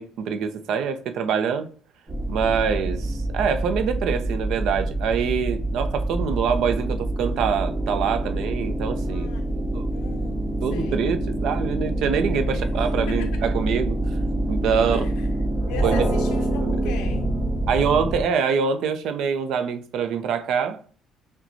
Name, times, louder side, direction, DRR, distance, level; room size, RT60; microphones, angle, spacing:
voice 1, 0.0-1.7 2.3-9.9 10.6-11.2 11.4-14.0 14.5-15.1 15.8-16.0 16.6-16.9 17.7-20.9, right 7 dB, 70° right, 0.5 m, -25 dB
sound 1, 2.1-18.2, right 1 dB, 30° right, 1.0 m, -26 dB
voice 2, 9.0-9.6 9.9-11.1 12.3-13.5 14.6-17.3, left 7 dB, 85° left, 0.4 m, -39 dB
5.9 x 2.2 x 2.6 m
cardioid pair, 105°, 0 cm